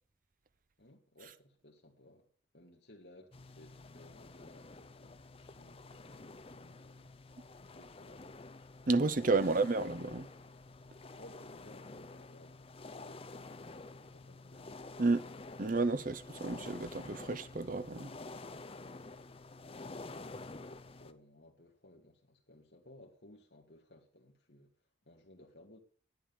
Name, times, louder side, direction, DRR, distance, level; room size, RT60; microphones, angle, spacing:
voice 1, 0.8-2.3 2.5-7.1 7.5-8.4 11.1-14.8 20.7-24.7 25.0-25.8, left 1 dB, 60° left, 2.0 m, -59 dB
sound 1, 3.3-21.1, left 3 dB, 30° left, 0.6 m, -49 dB
voice 2, 8.9-10.3 15.0-15.2 15.6-18.1, right 3 dB, 45° right, 0.7 m, -31 dB
10.5 x 9.2 x 6.9 m
head